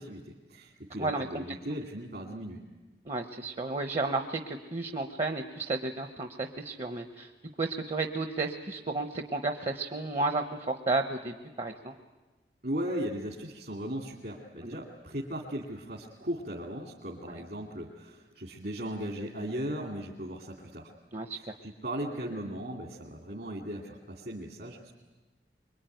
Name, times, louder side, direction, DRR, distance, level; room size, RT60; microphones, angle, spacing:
voice 1, 0.0-2.6 12.6-20.9 21.3-24.9, equal, 60° right, 0 dB, 2.5 m, -37 dB
voice 2, 3.0-7.3 7.6-12.0 21.1-21.4, right 3 dB, 35° right, 6 dB, 1.0 m, -32 dB
25.0 x 23.0 x 9.3 m, 1.2 s
head